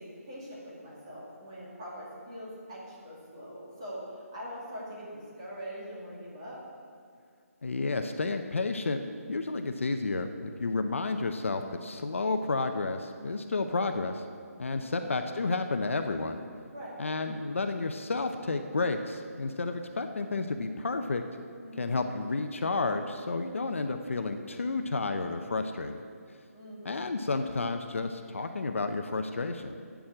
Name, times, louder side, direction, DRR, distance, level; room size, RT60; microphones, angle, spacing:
voice 1, 0.0-4.0 4.3-6.6 14.8-15.2 16.7-17.0 21.6-22.0 26.5-27.0, equal, 20° right, -7 dB, 2.4 m, -43 dB
voice 2, 7.6-9.0 9.3-14.2 14.6-16.4 17.0-21.2 21.8-26.0 26.8-29.8, left 3 dB, 55° left, 7 dB, 0.6 m, -31 dB
8.7 x 7.1 x 7.7 m, 2.1 s
hypercardioid pair, 180°, 8 cm